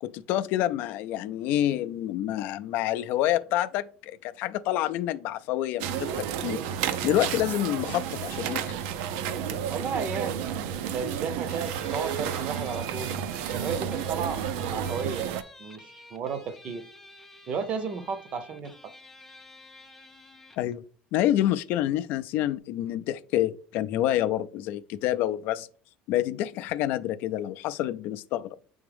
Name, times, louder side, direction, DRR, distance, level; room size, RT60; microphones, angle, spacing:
voice 1, 0.0-6.6 7.0-8.7 20.6-20.8 21.1-25.7 26.1-28.6, left 13 dB, 60° left, 0.3 m, -28 dB
sound 1, 5.8-15.4, right 8 dB, 85° right, 0.5 m, -31 dB
voice 2, 9.7-13.2 13.5-15.3 15.6-16.9 17.5-18.9, right 6 dB, 35° right, 0.6 m, -34 dB
Guitar, 11.5-20.7, left 3 dB, 5° left, 0.5 m, -51 dB
8.6 x 3.5 x 3.4 m
cardioid pair, 170°, 4 cm